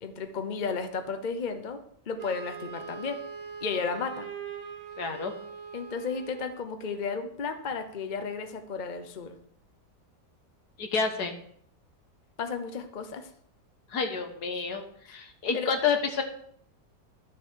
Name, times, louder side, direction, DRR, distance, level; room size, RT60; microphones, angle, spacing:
voice 1, 0.0-1.8 2.1-3.2 3.6-4.3 5.7-9.3 12.4-13.3 15.1-15.2 15.5-15.7, left 5 dB, 40° left, 7 dB, 0.7 m, -33 dB
Wind instrument woodwind instrument, 2.2-6.6, right 6 dB, 35° right, 0.6 m, -41 dB
voice 2, 5.0-5.3 10.8-11.3 13.9-16.2, left 5 dB, 65° left, 5 dB, 1.8 m, -29 dB
12.5 x 7.1 x 4.6 m, 0.66 s
omnidirectional pair, 1.9 m